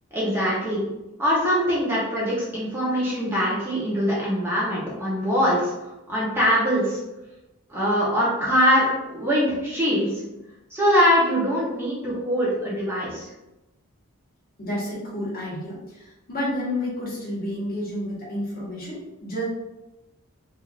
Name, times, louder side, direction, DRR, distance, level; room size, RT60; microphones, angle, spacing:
voice 1, 0.1-0.8 1.2-7.0 7.7-10.2 10.7-13.3, equal, 10° right, -7 dB, 0.7 m, -23 dB
voice 2, 14.6-19.4, left 1 dB, 40° left, -7 dB, 1.2 m, -30 dB
3.2 x 2.5 x 2.4 m, 0.98 s
head